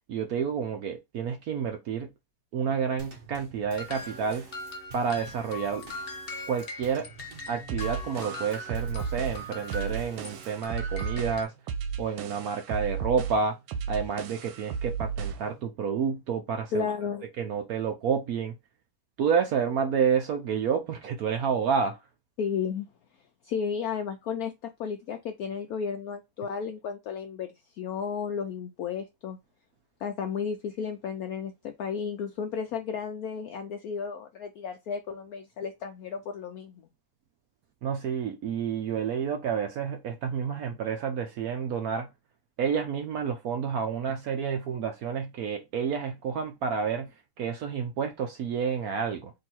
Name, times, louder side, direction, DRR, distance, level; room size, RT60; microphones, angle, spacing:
voice 1, 0.1-2.1 2.5-4.5 4.9-5.8 6.5-7.1 7.5-11.5 12.0-13.6 13.9-16.9 17.4-18.6 19.2-22.0 37.8-42.1 42.6-49.3, right 6 dB, 70° right, 0.9 m, -29 dB
Drum kit / Snare drum / Bass drum, 3.0-10.7, right 3 dB, 35° right, 1.0 m, -49 dB
sound 1, 3.8-10.4 10.6-11.4, left 2 dB, 40° left, 0.9 m, -41 dB
sound 2, 7.7-15.5, right 6 dB, 90° right, 1.5 m, -34 dB
voice 2, 16.7-17.3 22.4-22.9 23.4-27.5 27.7-29.4 30.0-36.9, left 6 dB, 75° left, 0.8 m, -33 dB
3.8 x 2.7 x 4.2 m
omnidirectional pair, 2.1 m